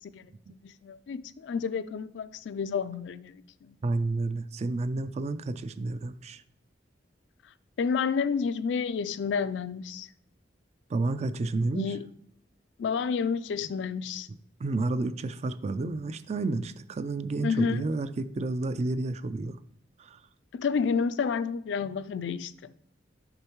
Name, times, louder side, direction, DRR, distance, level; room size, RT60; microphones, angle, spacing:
voice 1, 0.0-3.8 7.8-10.1 11.7-12.1 12.8-14.3 17.4-17.9 20.5-22.7, left 6 dB, 70° left, 0.3 m, -30 dB
voice 2, 3.8-6.4 10.9-11.9 14.6-19.6 20.0-20.2, right 2 dB, 35° right, 0.3 m, -30 dB
6.7 x 5.5 x 3.0 m
head